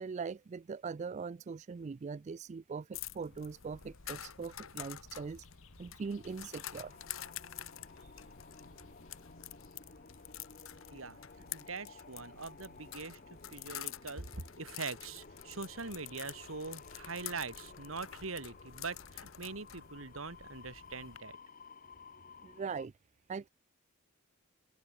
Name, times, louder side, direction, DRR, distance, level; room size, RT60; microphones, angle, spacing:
voice 1, 0.0-5.5 5.8-7.0 22.4-22.9 23.3-23.5, right 5 dB, 35° right, 0.3 m, -41 dB
sound 1, 2.9-21.2, left 11 dB, 80° left, 1.5 m, -48 dB
sound 2, 5.8-22.9, left 4 dB, 40° left, 1.6 m, -55 dB
voice 2, 10.9-21.4, right 4 dB, 80° right, 2.7 m, -43 dB
open air
head